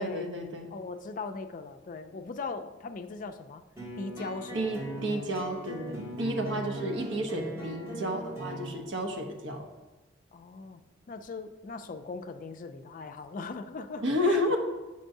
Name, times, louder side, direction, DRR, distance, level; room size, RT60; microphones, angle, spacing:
voice 1, 0.0-0.7 4.5-9.6 14.0-14.6, equal, 80° right, 4 dB, 0.8 m, -31 dB
voice 2, 0.7-3.6 4.0-4.6 6.4-6.8 7.5-7.8 10.3-10.8 11.1-14.6, left 4 dB, 45° left, 8 dB, 0.4 m, -40 dB
sound 1, 3.8-8.8, right 1 dB, 15° right, 2.1 m, -39 dB
7.6 x 5.3 x 2.6 m, 1.1 s
head